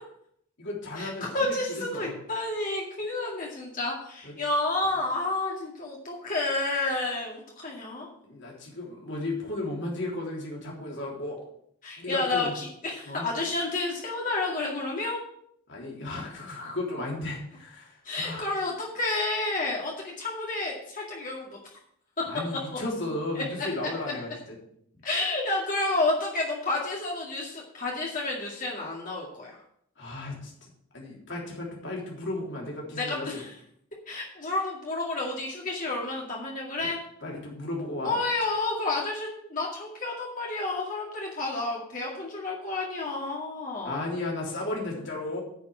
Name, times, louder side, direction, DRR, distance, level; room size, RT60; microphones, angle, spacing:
voice 1, 0.6-2.1 4.2-4.3 8.2-11.4 12.0-12.5 13.1-13.3 15.7-18.5 22.2-24.3 30.0-33.4 37.2-38.2 43.8-45.4, left 2 dB, 55° left, -3 dB, 3.5 m, -34 dB
voice 2, 1.3-8.1 11.8-15.2 18.0-21.6 23.4-23.5 25.0-29.5 33.0-33.5 34.1-37.0 38.0-44.0, left 2 dB, 40° left, -3 dB, 2.1 m, -30 dB
9.4 x 5.8 x 7.6 m, 0.70 s
head